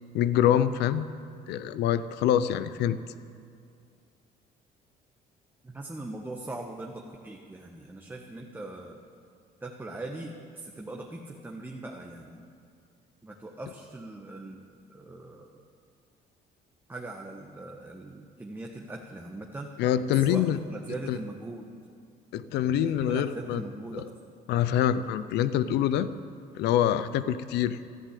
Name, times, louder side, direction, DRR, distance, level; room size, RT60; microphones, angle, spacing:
voice 1, 0.1-1.1 1.5-3.0 19.8-20.6 21.1-21.2 22.3-23.6 23.9-24.0 24.5-26.1 26.5-27.8, left 10 dB, 85° left, 14 dB, 0.7 m, -25 dB
voice 2, 5.6-9.0 9.6-12.4 13.2-14.6 14.9-15.6 16.9-19.7 20.3-21.7 22.8-24.1, right 2 dB, 10° right, 1 dB, 1.2 m, -40 dB
13.5 x 11.0 x 8.5 m, 2.3 s
cardioid pair, 110°, 17 cm